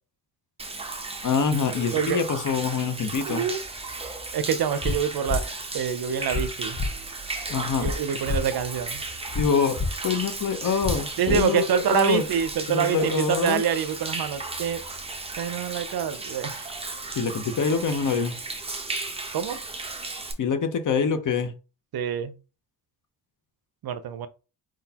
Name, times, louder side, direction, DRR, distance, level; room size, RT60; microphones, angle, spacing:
Human voice / Rain / Stream, 0.6-20.3, right 3 dB, 15° right, 0.8 m, -35 dB
voice 1, 1.2-3.4 7.5-7.9 9.3-9.8 10.0-12.2 12.7-13.6 17.2-18.4 20.4-21.5, left 5 dB, 45° left, 0.8 m, -25 dB
voice 2, 3.3-3.6 4.3-5.4 5.7-6.8 7.8-9.0 11.2-14.8 15.4-16.7 19.3-19.6 21.9-22.3 23.8-24.3, right 7 dB, 60° right, 0.6 m, -26 dB
sound 1, 4.8-5.0 5.3-5.4 6.3-6.4 6.8-6.9 7.8-7.9 8.3-8.4 9.3-9.4 9.8-9.9 10.8-11.0 11.3-11.4, left 3 dB, 20° left, 0.4 m, -26 dB
4.7 x 3.9 x 2.8 m
cardioid pair, 130°, 41 cm